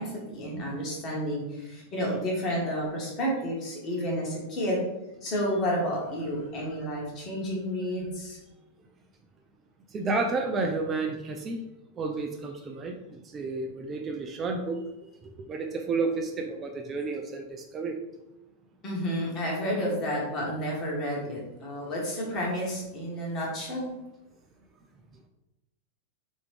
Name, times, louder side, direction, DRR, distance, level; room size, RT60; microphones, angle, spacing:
voice 1, 0.0-4.8 5.2-8.4 18.8-23.9, equal, 30° left, -3 dB, 1.4 m, -31 dB
voice 2, 9.9-11.6 11.9-18.0, right 3 dB, 25° right, 3 dB, 0.4 m, -31 dB
3.5 x 3.0 x 3.3 m, 0.96 s
figure-of-eight pair, 90°, 0 cm